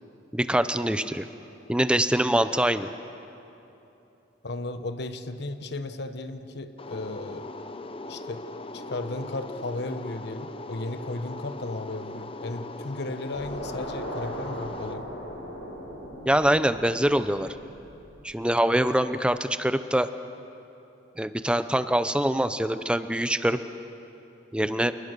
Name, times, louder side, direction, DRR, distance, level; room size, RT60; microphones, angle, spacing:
voice 1, 0.3-1.3 1.7-2.9 16.3-17.5 18.2-20.1 21.2-23.6 24.5-24.9, right 1 dB, 5° right, 11 dB, 0.7 m, -24 dB
voice 2, 4.4-7.5 8.1-8.5 8.7-15.1, left 2 dB, 60° left, 9 dB, 1.2 m, -35 dB
sound 1, 6.8-14.9, left 2 dB, 30° left, 0.9 m, -39 dB
sound 2, 13.3-18.6, equal, 90° left, 7.7 m, -39 dB
28.5 x 20.0 x 6.8 m, 3.0 s
head